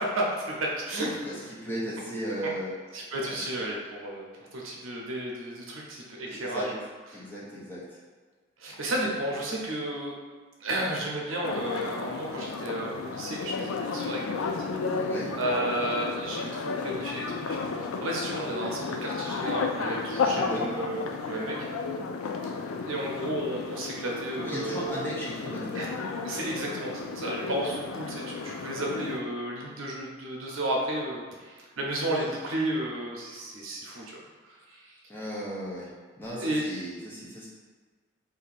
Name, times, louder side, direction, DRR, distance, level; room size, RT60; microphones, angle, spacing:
voice 1, 0.0-1.3 2.9-4.3 4.5-6.8 8.6-10.1 10.6-14.5 15.4-17.6 18.0-21.5 22.4-22.6 22.8-25.0 25.7-25.9 26.2-34.9 36.4-36.7, right 1 dB, 75° right, -2 dB, 0.7 m, -32 dB
voice 2, 1.2-2.7 3.3-3.4 6.3-6.7 7.1-8.0 14.9-15.3 20.2-20.8 24.4-25.9 32.3-32.4 35.1-35.9 36.2-37.5, equal, 10° left, -7 dB, 0.6 m, -36 dB
sound 1, 11.4-29.2, left 4 dB, 90° left, 0.4 m, -33 dB
2.6 x 2.6 x 4.0 m, 1.5 s
head